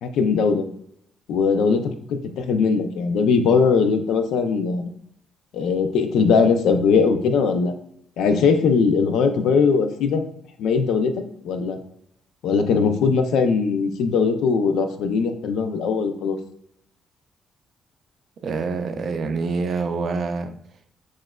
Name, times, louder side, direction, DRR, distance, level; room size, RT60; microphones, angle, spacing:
voice 1, 0.0-0.6 1.3-4.9 5.5-7.7 8.2-10.2 10.6-11.1 11.4-11.8 12.4-16.4, left 5 dB, 80° left, 7 dB, 0.5 m, -20 dB
voice 2, 18.4-20.5, right 4 dB, 60° right, 8 dB, 0.4 m, -26 dB
6.1 x 2.4 x 2.2 m, 0.70 s
cardioid pair, 90°, 0 cm